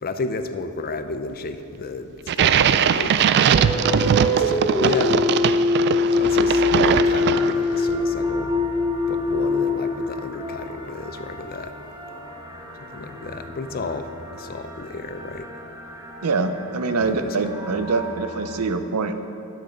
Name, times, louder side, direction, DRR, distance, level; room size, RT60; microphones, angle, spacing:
voice 1, 0.0-3.1 4.0-5.2 6.1-8.5 9.1-11.7 12.9-15.5 17.0-17.4, left 3 dB, 40° left, 9 dB, 0.5 m, -32 dB
sound 1, 2.3-7.8, right 8 dB, 50° right, 0.3 m, -20 dB
sound 2, 3.5-10.8, left 3 dB, 5° left, 0.8 m, -22 dB
sound 3, 6.2-18.6, right 1 dB, 20° right, 1.4 m, -39 dB
voice 2, 16.2-19.1, right 4 dB, 85° right, 9 dB, 0.6 m, -24 dB
10.0 x 6.4 x 6.5 m, 2.6 s
head